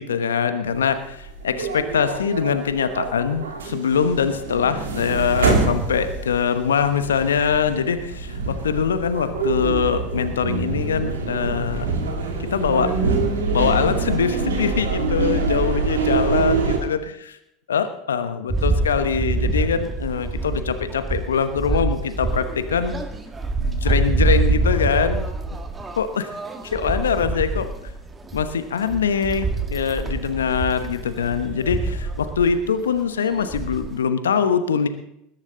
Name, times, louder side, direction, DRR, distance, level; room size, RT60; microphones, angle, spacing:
voice 1, 0.0-11.9 12.5-12.9 13.5-17.0 17.7-23.0 23.6-25.2 26.0-26.3 26.6-27.7 28.3-34.9, left 7 dB, 80° left, 10 dB, 1.1 m, -23 dB
sound 1, 0.7-16.8, right 4 dB, 80° right, 2.8 m, -25 dB
sound 2, 18.5-32.7 33.0-33.1 33.3-33.9, right 3 dB, 20° right, 1.9 m, -25 dB
20.5 x 11.0 x 3.9 m, 0.79 s
hypercardioid pair, 80°, 0 cm